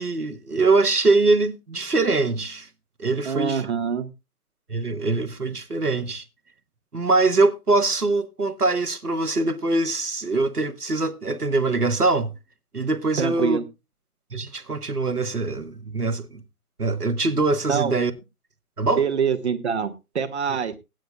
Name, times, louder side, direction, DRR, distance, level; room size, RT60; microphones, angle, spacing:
voice 1, 0.0-2.7 3.0-3.7 4.7-6.2 6.9-12.3 12.7-13.6 14.3-16.4 16.8-18.1 18.8-19.0, right 3 dB, 90° right, 1.4 m, -23 dB
voice 2, 3.2-4.1 13.2-13.6 17.7-17.9 19.0-20.7, right 7 dB, 45° right, 1.4 m, -24 dB
20.0 x 9.2 x 2.3 m
figure-of-eight pair, 140°, 44 cm